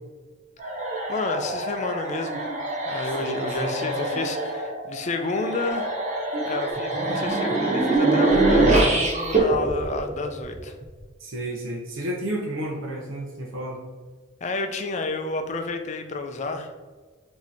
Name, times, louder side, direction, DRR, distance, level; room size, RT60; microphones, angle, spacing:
sound 1, 0.6-10.8, right 2 dB, 35° right, 0.6 m, -24 dB
voice 1, 1.1-2.5 2.9-5.9 6.5-10.7 14.4-16.7, left 3 dB, 35° left, 6 dB, 0.3 m, -30 dB
voice 2, 3.2-3.8 11.2-13.9, right 1 dB, 80° right, -1 dB, 0.6 m, -32 dB
5.0 x 2.7 x 2.7 m, 1.4 s
head